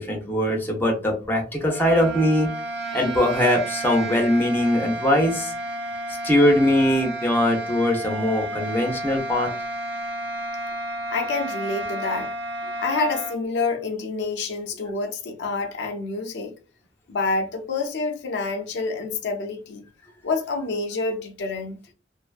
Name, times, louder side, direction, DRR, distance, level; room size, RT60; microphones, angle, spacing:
voice 1, 0.0-2.5 2.9-5.5 6.2-9.5, left 1 dB, 10° left, 0.6 m, -21 dB
sound 1, 1.6-13.4, right 2 dB, 65° right, 0.5 m, -31 dB
voice 2, 11.1-12.3 12.8-16.5 17.1-19.8 20.2-21.8, left 3 dB, 70° left, 0.4 m, -27 dB
2.6 x 2.3 x 2.3 m
head